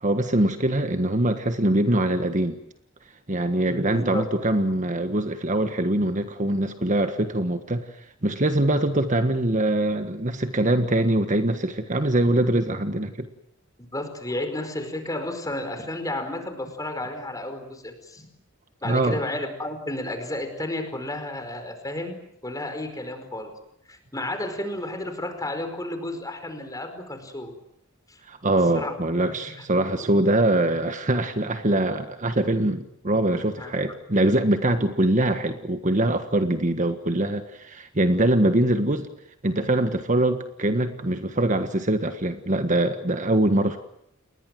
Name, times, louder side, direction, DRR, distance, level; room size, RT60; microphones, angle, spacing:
voice 1, 0.0-2.6 3.3-7.8 8.2-13.3 18.8-19.2 28.3-39.1 39.4-43.8, right 1 dB, 35° right, 8 dB, 1.5 m, -23 dB
voice 2, 3.9-4.2 13.9-18.3 18.8-23.5 23.9-27.5 28.1-28.2 28.7-28.9 33.6-33.7, left 1 dB, 15° left, 8 dB, 4.8 m, -32 dB
30.0 x 21.0 x 7.8 m, 0.74 s
head